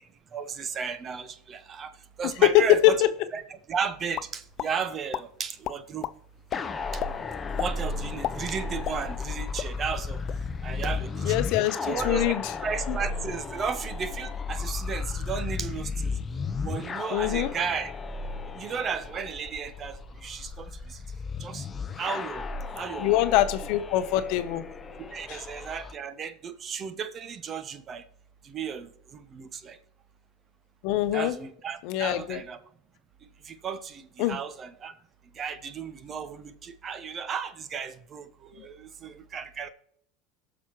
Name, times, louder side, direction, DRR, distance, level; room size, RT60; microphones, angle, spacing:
voice 1, 0.3-3.0 3.3-6.1 6.9-7.0 7.5-10.2 10.6-11.4 11.8-12.3 12.6-16.2 16.6-17.9 18.5-21.0 21.4-21.7 22.0-22.5 22.7-23.1 25.0-28.0 28.4-29.8 31.1-32.6 33.4-34.9 35.3-39.7, right 6 dB, 35° right, 12 dB, 0.8 m, -34 dB
voice 2, 2.4-3.1 11.2-12.4 12.9-13.0 17.1-17.5 23.0-24.7 25.3-25.4 30.8-31.4 31.8-32.4 34.2-34.4 38.6-38.7, left 14 dB, 65° left, 11 dB, 0.8 m, -23 dB
sound 1, 4.1-4.7 5.1-5.2 5.6-6.1 6.5-6.6 7.0-7.1 7.6-7.7 8.1-9.3 9.6-9.7 10.1-10.4, left 12 dB, 50° left, 0.4 m, -32 dB
sound 2, 6.5-25.9, left 4 dB, 25° left, 0.7 m, -34 dB
18.0 x 6.2 x 3.0 m, 0.67 s
supercardioid pair, 110°, 0 cm